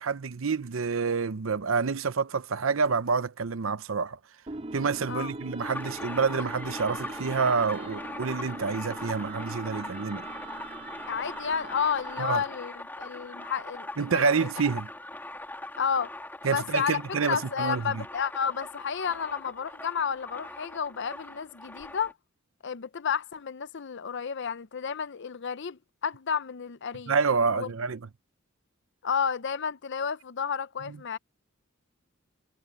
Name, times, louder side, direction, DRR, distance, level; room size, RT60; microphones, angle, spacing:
voice 1, 0.0-4.2 4.7-10.3 12.2-12.4 14.0-14.9 16.4-18.0 27.1-28.0, right 5 dB, 70° right, 0.7 m, -28 dB
sound 1, 4.5-12.7, right 2 dB, 30° right, 2.0 m, -41 dB
sound 2, 5.6-22.1, left 1 dB, 10° left, 2.7 m, -41 dB
voice 2, 11.1-14.5 15.8-16.1 16.5-17.0 17.3-22.1 22.6-27.1 27.5-27.7 29.0-31.2, left 7 dB, 60° left, 0.6 m, -31 dB
head